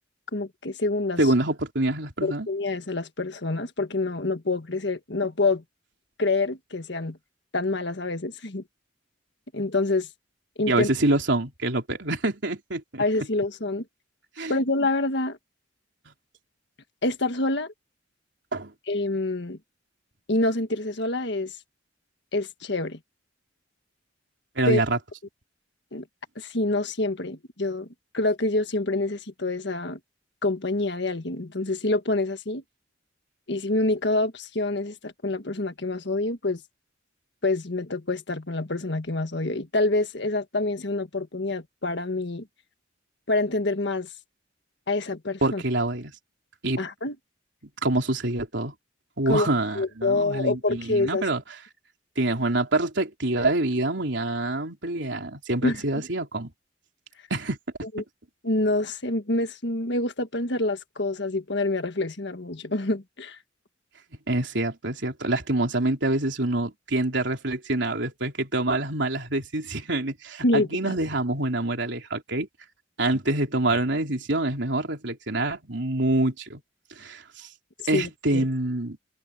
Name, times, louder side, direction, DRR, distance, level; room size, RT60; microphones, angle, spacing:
voice 1, 0.3-1.2 2.2-5.6 6.2-7.2 7.5-8.6 9.5-10.1 10.6-10.9 13.0-13.9 14.5-15.4 17.0-17.7 18.9-19.6 20.3-21.6 22.3-23.0 24.7-24.8 25.9-26.0 26.4-27.9 28.1-30.0 30.4-32.6 33.5-36.6 37.4-42.5 43.3-44.1 44.9-45.6 46.8-47.2 49.3-49.5 49.8-51.3 55.6-55.8 57.9-58.0 58.4-63.4 70.4-71.0 77.8-78.5, left 2 dB, 60° left, 1.7 m, -26 dB
voice 2, 1.2-2.5 10.7-13.0 14.4-14.5 18.5-18.7 24.6-25.0 45.4-46.1 46.6-46.8 47.8-48.7 49.2-51.4 52.2-56.5 57.3-57.6 64.3-72.5 73.0-76.6 77.0-77.5 77.9-79.0, right 2 dB, 65° right, 3.8 m, -26 dB
head